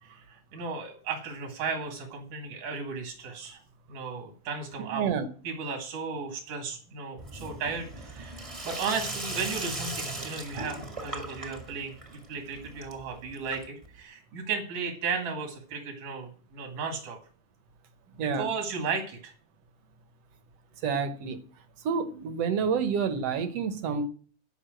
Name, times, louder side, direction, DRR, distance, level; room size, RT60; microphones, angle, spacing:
voice 1, 0.0-3.6 3.9-5.1 5.4-17.2 18.1-19.3, right 5 dB, 80° right, 2 dB, 3.5 m, -35 dB
voice 2, 4.9-5.3 18.2-18.5 20.8-21.4 21.8-24.1, right 6 dB, 65° right, 9 dB, 1.8 m, -28 dB
Sink (filling or washing), 7.2-14.0, right 2 dB, 20° right, 0.8 m, -38 dB
11.5 x 5.6 x 7.7 m, 0.43 s
omnidirectional pair, 3.5 m